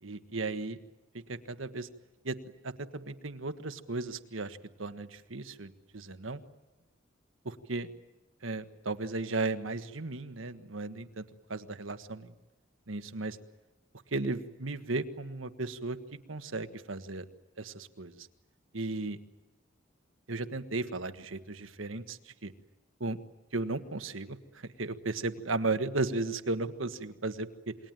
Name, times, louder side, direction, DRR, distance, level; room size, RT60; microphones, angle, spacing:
voice 1, 0.0-0.8 1.3-1.9 2.2-2.4 2.6-6.4 7.4-7.9 8.4-11.2 11.5-12.3 12.9-13.4 14.1-16.0 16.3-17.2 17.6-18.3 18.7-19.2 20.3-22.5 23.0-23.2 23.5-27.7, right 3 dB, 85° right, 10 dB, 1.5 m, -35 dB
28.0 x 22.0 x 9.2 m, 1.1 s
head